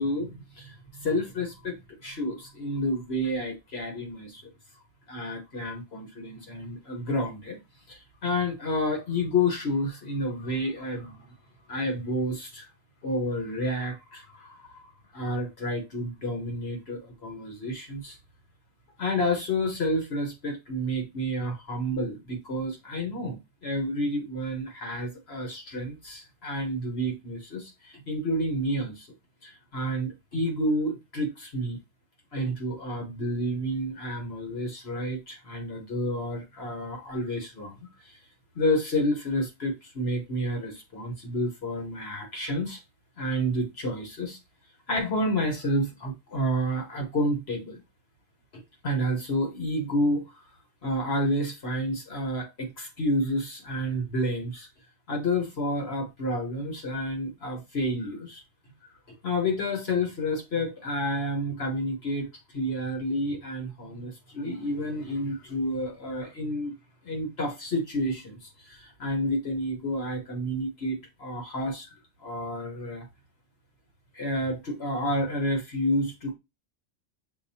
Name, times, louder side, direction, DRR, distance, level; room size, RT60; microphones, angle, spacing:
voice 1, 0.0-4.4 5.1-7.6 7.9-11.3 11.7-12.7 13.0-18.2 19.0-29.1 29.4-31.8 32.3-38.2 38.5-42.8 43.2-44.4 44.9-47.8 48.8-50.5 50.8-54.7 55.1-58.4 59.2-62.3 62.5-66.7 67.0-73.0 74.1-76.3, equal, 60° left, 1.4 m, -30 dB
6.7 x 2.7 x 2.7 m
omnidirectional pair, 1.2 m